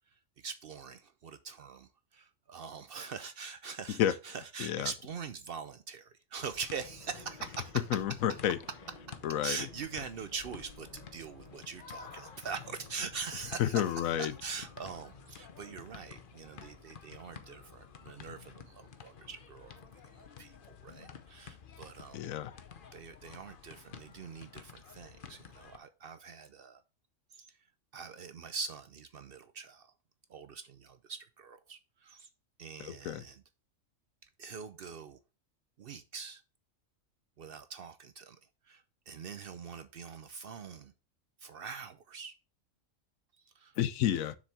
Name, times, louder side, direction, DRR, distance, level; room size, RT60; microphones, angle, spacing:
voice 1, 0.1-7.7 8.3-8.4 9.4-19.7 20.0-22.3 22.9-26.8 27.3-27.6 27.9-29.9 30.3-32.3 32.6-33.4 34.4-35.2 35.8-36.4 37.4-38.4 38.6-40.9 41.4-42.3 43.5-43.7, right 5 dB, 60° right, 0.7 m, -43 dB
voice 2, 4.6-4.9 7.9-8.6 9.2-9.6 13.6-14.3 22.1-22.5 32.8-33.2 43.8-44.4, left 11 dB, 85° left, 1.1 m, -30 dB
sound 1, 6.4-25.8, left 7 dB, 45° left, 0.8 m, -52 dB
sound 2, 6.7-20.3, left 2 dB, 30° left, 1.6 m, -58 dB
7.3 x 6.2 x 3.3 m
omnidirectional pair, 1.4 m